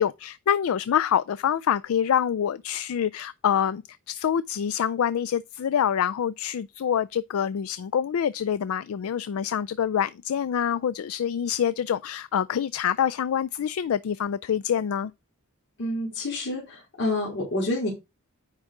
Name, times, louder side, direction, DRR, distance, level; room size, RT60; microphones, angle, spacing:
voice 1, 0.0-15.1, left 8 dB, 75° left, 0.3 m, -26 dB
voice 2, 15.8-17.9, left 1 dB, 55° left, 3.4 m, -28 dB
9.6 x 3.7 x 4.8 m
head